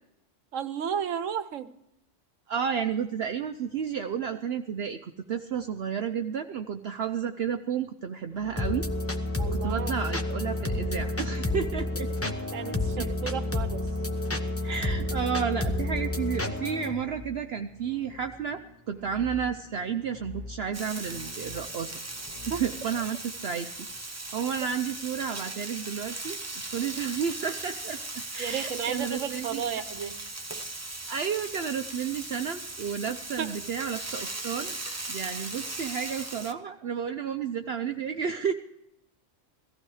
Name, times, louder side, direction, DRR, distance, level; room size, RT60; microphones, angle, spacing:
voice 1, 0.5-1.7 9.4-9.9 12.5-13.9 22.5-22.6 28.4-30.2 33.4-33.6, right 8 dB, 80° right, 12 dB, 1.2 m, -33 dB
voice 2, 2.5-8.9 9.5-12.3 13.0-13.1 14.6-18.6 18.9-21.9 22.5-28.0 28.3-29.6 31.1-34.8 35.1-38.5, right 7 dB, 60° right, 7 dB, 0.8 m, -32 dB
sound 1, 8.3-23.1, left 4 dB, 85° left, 2.3 m, -47 dB
sound 2, 8.6-16.9, left 2 dB, 10° left, 0.9 m, -30 dB
Frying (food), 20.7-36.5, right 2 dB, 15° right, 0.8 m, -38 dB
17.0 x 14.5 x 4.8 m, 0.83 s
omnidirectional pair, 1.3 m